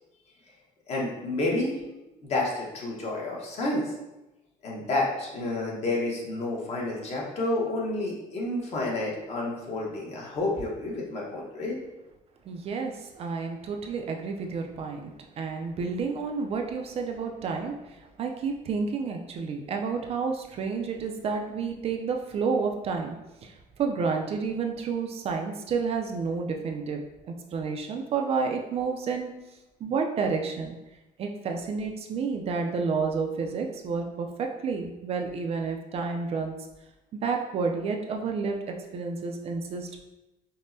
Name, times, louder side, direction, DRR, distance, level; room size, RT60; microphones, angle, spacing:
voice 1, 0.9-1.8 2.2-3.9 4.6-11.8, left 2 dB, 45° left, -3 dB, 1.0 m, -30 dB
voice 2, 12.5-23.2 23.4-29.3 29.8-30.8 31.2-36.5 37.2-40.1, right 5 dB, 45° right, 3 dB, 0.4 m, -30 dB
5.2 x 2.1 x 2.6 m, 0.98 s
cardioid pair, 130°, 15 cm